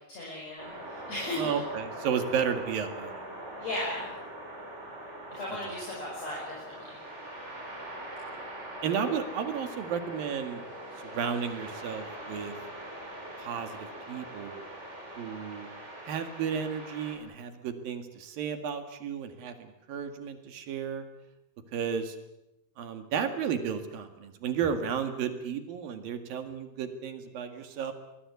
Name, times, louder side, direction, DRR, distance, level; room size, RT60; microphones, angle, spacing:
voice 1, 0.1-1.6 3.6-4.1 5.3-7.0, left 1 dB, 40° left, -3 dB, 7.0 m, -36 dB
sound 1, 0.6-17.2, right 1 dB, 15° right, 4.8 m, -42 dB
voice 2, 1.4-3.2 8.8-10.6 11.0-12.5 13.4-14.6 15.2-15.7 16.0-21.0 21.7-22.2 22.8-27.9, right 7 dB, 65° right, 7 dB, 3.6 m, -33 dB
24.5 x 20.0 x 8.4 m, 0.90 s
omnidirectional pair, 4.5 m